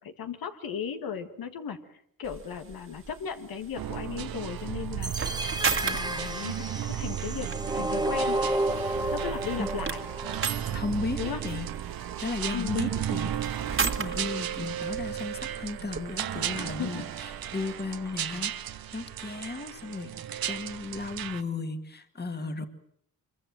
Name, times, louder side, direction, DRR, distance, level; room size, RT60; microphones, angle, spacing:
voice 1, 0.0-5.1 5.8-7.5 7.7-8.4 9.1-10.0 11.2-11.4 12.5-12.8 16.5-17.0, left 7 dB, 80° left, 8 dB, 1.8 m, -36 dB
sound 1, 2.2-17.8, right 5 dB, 35° right, 1.9 m, -38 dB
sound 2, 3.8-21.4, right 10 dB, 80° right, 1.2 m, -35 dB
sound 3, 5.0-11.0, right 1 dB, 10° right, 1.2 m, -32 dB
voice 2, 10.7-11.7 12.2-20.1 20.5-22.7, left 3 dB, 30° left, 8 dB, 2.1 m, -35 dB
24.5 x 23.0 x 7.6 m, 0.68 s
cardioid pair, 110°, 35 cm